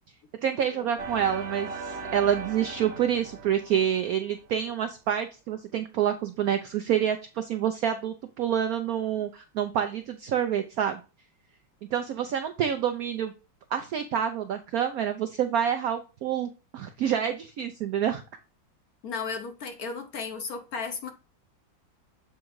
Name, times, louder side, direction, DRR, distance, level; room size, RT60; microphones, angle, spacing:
voice 1, 0.4-11.0 11.9-13.3 13.7-18.2, right 9 dB, 75° right, 0.8 m, -27 dB
sound 1, 1.0-4.5, right 4 dB, 45° right, 0.8 m, -38 dB
voice 2, 19.0-21.1, left 5 dB, 60° left, 1.1 m, -34 dB
7.3 x 3.7 x 4.6 m
omnidirectional pair, 2.1 m